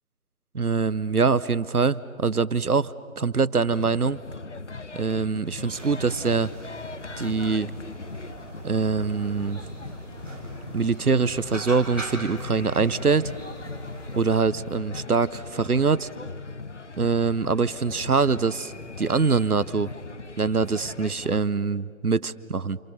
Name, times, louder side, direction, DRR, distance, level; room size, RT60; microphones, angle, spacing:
voice 1, 0.5-4.2 4.9-6.5 7.2-7.7 8.6-9.6 10.7-13.3 14.1-16.1 17.0-18.7 19.0-19.9 20.4-22.8, right 4 dB, 85° right, 17 dB, 0.9 m, -24 dB
sound 1, 3.7-21.4, left 4 dB, 55° left, 0.6 m, -40 dB
sound 2, 5.6-14.3, right 1 dB, 5° right, 1.5 m, -40 dB
29.5 x 28.0 x 6.7 m, 2.1 s
figure-of-eight pair, 165°, 44 cm